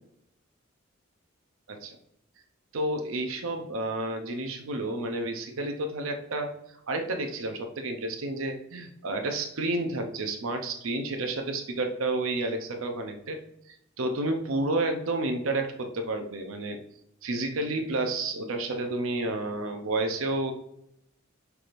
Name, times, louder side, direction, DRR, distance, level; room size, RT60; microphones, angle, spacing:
voice 1, 2.7-6.5 6.9-13.4 13.7-16.8 17.2-20.5, right 2 dB, 80° right, 5 dB, 0.6 m, -30 dB
5.8 x 3.4 x 2.5 m, 0.76 s
head